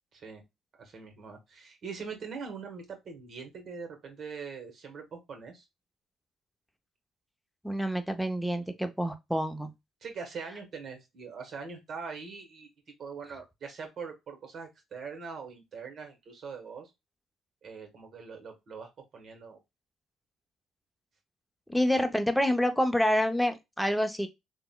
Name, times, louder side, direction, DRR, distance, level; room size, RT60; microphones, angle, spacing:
voice 1, 0.1-0.4 0.8-5.7 10.0-12.7 13.0-16.9 17.6-19.6, right 5 dB, 55° right, 1.2 m, -42 dB
voice 2, 7.6-9.7 21.7-24.3, equal, ahead, 0.6 m, -27 dB
3.6 x 2.2 x 2.2 m
supercardioid pair, 70°, 0 cm